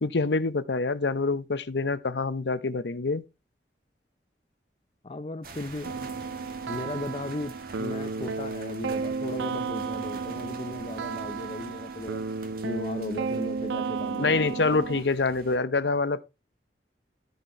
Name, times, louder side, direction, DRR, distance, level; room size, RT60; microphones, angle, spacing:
voice 1, 0.0-3.2 14.2-16.2, left 3 dB, 70° left, 0.7 m, -26 dB
voice 2, 5.0-6.1 6.7-12.2 12.6-14.6, left 2 dB, 30° left, 0.5 m, -37 dB
sound 1, 5.4-15.6, right 3 dB, 55° right, 1.8 m, -47 dB
sound 2, 5.8-15.0, right 4 dB, 90° right, 0.5 m, -33 dB
13.5 x 4.5 x 4.5 m
head